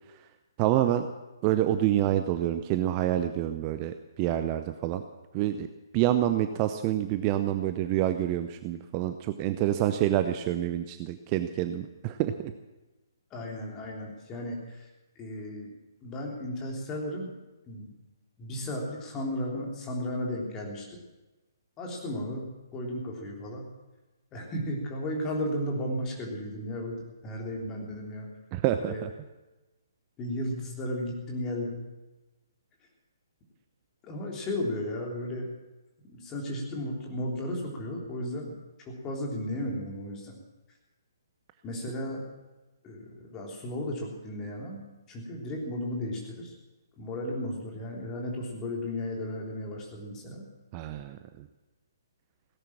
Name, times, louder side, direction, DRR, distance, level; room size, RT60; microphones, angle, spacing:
voice 1, 0.6-1.1 1.4-5.0 5.3-5.7 5.9-12.5 28.5-29.1 50.7-51.5, right 12 dB, 25° right, 9 dB, 0.7 m, -27 dB
voice 2, 13.3-14.9 15.2-15.7 16.0-17.3 17.7-17.9 18.4-20.8 21.8-23.7 24.3-27.0 27.2-28.3 28.8-29.0 30.2-31.8 34.0-35.5 36.1-38.5 38.9-40.4 41.6-42.2 42.8-44.8 45.1-46.5 47.0-50.4, left 1 dB, 20° left, -1 dB, 3.5 m, -34 dB
17.0 x 10.5 x 7.4 m, 1.1 s
figure-of-eight pair, 130°, 2 cm